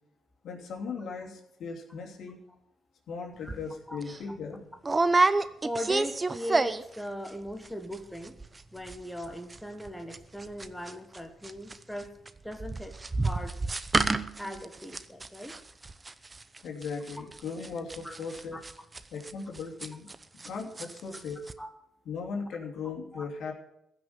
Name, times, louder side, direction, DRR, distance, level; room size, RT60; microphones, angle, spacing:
voice 1, 0.4-2.4 3.1-4.7 16.6-18.6 19.1-20.1 20.4-21.5 22.0-23.5, left 5 dB, 70° left, 1 dB, 3.1 m, -38 dB
sound 1, 3.5-3.6 4.0-4.2 4.8-7.0 7.3-7.7 7.9-8.0 8.2-8.6 8.9-11.2 11.4-20.5 20.8-21.2 21.5-21.6, right 3 dB, 25° right, 0.8 m, -29 dB
voice 2, 5.6-8.4 8.7-12.1 12.4-12.9 13.2-13.5 14.4-15.6 18.0-18.1 18.5-18.6 21.6-21.7 23.1-23.2, equal, 5° left, 5 dB, 1.5 m, -39 dB
15.5 x 6.2 x 9.8 m, 0.79 s
cardioid pair, 90°, 0 cm